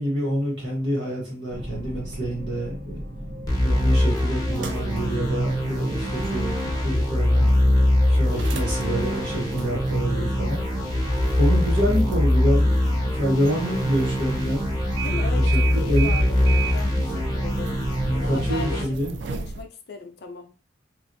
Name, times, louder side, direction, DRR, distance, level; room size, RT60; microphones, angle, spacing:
voice 1, 0.0-3.0 3.5-7.5 8.1-10.6 11.3-12.8 13.1-14.6 15.5-16.2 18.1-19.1, equal, 85° right, -4 dB, 1.3 m, -27 dB
sound 1, 1.5-18.5, equal, 45° right, 1.0 m, -36 dB
sound 2, 3.5-18.8, left 1 dB, 20° left, 0.8 m, -23 dB
sound 3, 3.7-19.6, right 5 dB, 70° right, 0.4 m, -37 dB
voice 2, 15.0-17.8 18.1-19.0 19.2-20.5, left 3 dB, 60° left, 4 dB, 0.5 m, -38 dB
3.1 x 2.4 x 2.6 m, 0.34 s
head